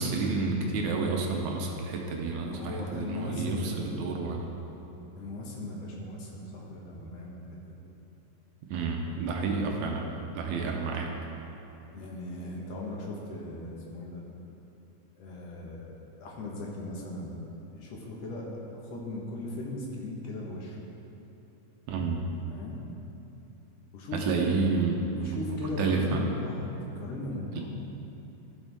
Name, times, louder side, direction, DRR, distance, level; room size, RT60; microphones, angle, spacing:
voice 1, 0.0-4.5 8.7-10.1 10.4-11.1 21.9-22.2 24.1-26.3 27.5-27.6, right 4 dB, 75° right, 1 dB, 2.0 m, -30 dB
voice 2, 2.4-3.8 5.2-7.8 11.9-14.2 15.2-17.3 17.7-20.8 22.5-22.8 23.9-24.5 25.2-26.7 26.9-27.7, left 1 dB, 60° left, -3 dB, 2.2 m, -38 dB
15.0 x 6.3 x 3.5 m, 3.0 s
omnidirectional pair, 3.6 m